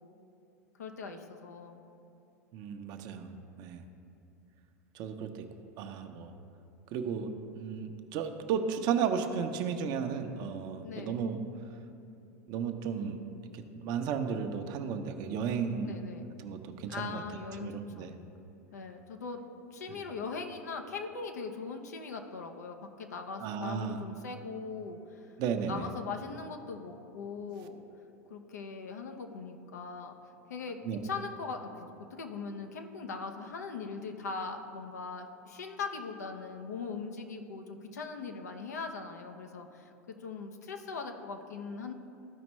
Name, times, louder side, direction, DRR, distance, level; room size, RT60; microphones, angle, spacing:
voice 1, 0.8-1.8 10.8-11.2 15.8-16.4 16.9-18.1 18.7-19.4 19.7-25.3 25.7-27.8 28.3-30.1 30.5-30.8 31.0-41.9, left 4 dB, 80° left, 5 dB, 0.8 m, -40 dB
voice 2, 2.5-3.3 3.6-3.8 4.9-5.4 5.8-6.3 6.9-7.3 7.6-11.4 12.5-13.2 13.5-15.9 16.4-17.2 17.6-18.1 19.9-20.0 23.4-24.0 25.4-25.9 30.8-31.0, right 7 dB, 50° right, 7 dB, 0.8 m, -34 dB
14.0 x 5.1 x 3.1 m, 2.7 s
hypercardioid pair, 95°, 9 cm